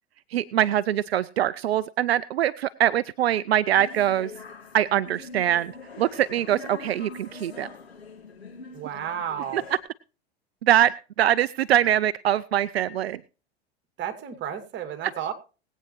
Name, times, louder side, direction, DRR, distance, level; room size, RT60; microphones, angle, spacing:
voice 1, 0.3-4.3 4.7-5.7 6.0-7.7 9.5-9.6 10.6-10.9 11.2-13.2, right 11 dB, 80° right, 16 dB, 0.5 m, -23 dB
sound 1, 3.7-9.8, left 4 dB, 85° left, 3.0 m, -43 dB
voice 2, 8.7-9.6 14.0-15.3, right 9 dB, 35° right, 7 dB, 2.4 m, -32 dB
20.5 x 8.7 x 3.1 m, 0.35 s
hypercardioid pair, 90°, 31 cm